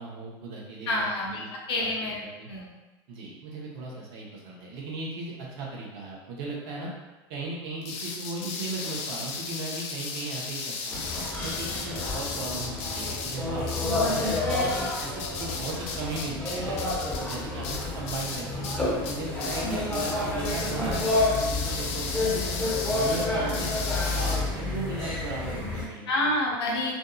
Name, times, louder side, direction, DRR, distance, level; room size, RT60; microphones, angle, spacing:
voice 1, 0.0-1.1 1.3-1.5 1.8-1.9 2.4-2.5 3.1-6.9 7.3-11.0 11.4-16.8 17.2-18.6 19.0-22.4 22.8-26.3, right 3 dB, 70° right, -3 dB, 0.8 m, -37 dB
voice 2, 0.9-1.4 1.7-2.7 19.6-20.0 26.1-26.9, left 1 dB, 90° left, -3 dB, 0.7 m, -28 dB
sound 1, 7.8-18.8 19.0-19.7 19.9-20.2 20.4-24.4, left 4 dB, 55° left, 0.4 m, -35 dB
sound 2, 10.9-25.8, left 2 dB, 10° left, 1.2 m, -29 dB
2.6 x 2.6 x 2.3 m, 1.2 s
hypercardioid pair, 95°, 13 cm